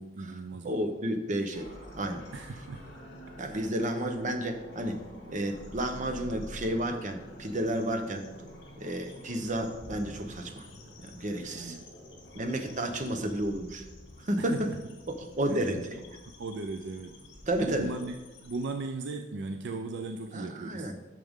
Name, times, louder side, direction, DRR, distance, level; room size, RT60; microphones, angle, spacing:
voice 1, 0.0-0.9 2.3-2.9 3.6-3.9 11.5-11.8 14.4-14.8 15.5-15.9 16.2-17.2 17.6-20.9, right 3 dB, 60° right, 6 dB, 0.5 m, -38 dB
voice 2, 0.6-1.7 1.9-2.2 3.4-5.0 5.3-8.3 8.8-10.6 11.0-11.8 12.3-13.8 14.2-14.5 15.2-15.9 17.5-17.9 20.3-20.9, right 1 dB, 40° right, 6 dB, 0.9 m, -31 dB
sound 1, 1.5-18.7, equal, 60° left, 2.0 m, -48 dB
10.5 x 6.6 x 3.7 m, 1.1 s
head